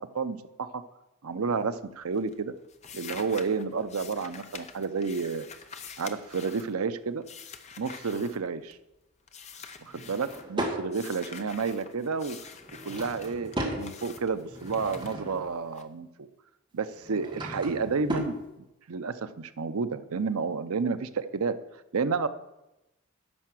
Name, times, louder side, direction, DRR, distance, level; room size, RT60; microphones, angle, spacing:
voice 1, 0.1-0.8 1.2-2.5 2.9-5.5 6.0-7.2 7.8-8.8 10.1-12.4 12.8-16.3 16.7-18.4 18.9-21.5 21.9-22.3, right 5 dB, 85° right, 11 dB, 0.6 m, -30 dB
sound 1, 1.5-1.9 2.2-8.9 9.3-10.5 10.9-15.8, left 6 dB, 30° left, 0.7 m, -47 dB
Drawer open or close / Wood, 9.9-10.8 12.5-13.8 14.4-15.5 16.9-18.4, right 1 dB, 20° right, 1.7 m, -35 dB
10.5 x 5.7 x 7.6 m, 0.92 s
head